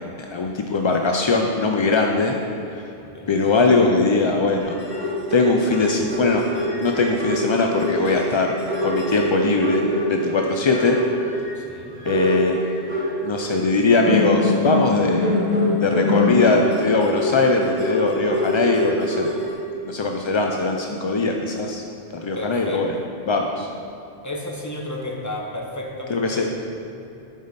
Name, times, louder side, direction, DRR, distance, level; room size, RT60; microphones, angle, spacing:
voice 1, 0.3-2.4 3.3-4.8 5.3-6.4 6.8-8.5 8.8-11.0 12.0-12.6 13.2-15.4 15.8-19.3 19.9-21.8 22.2-22.9 23.3-23.7 26.1-26.4, left 3 dB, 50° left, 2 dB, 0.3 m, -20 dB
voice 2, 3.0-3.4 11.5-11.9 22.3-22.9 24.2-26.5, left 1 dB, 20° left, -1 dB, 0.9 m, -32 dB
sound 1, 4.6-10.4 10.7-11.5 12.0-13.6 14.0-19.4, left 1 dB, 40° right, 2.1 m, -24 dB
11.0 x 5.2 x 4.1 m, 2.8 s
omnidirectional pair, 1.1 m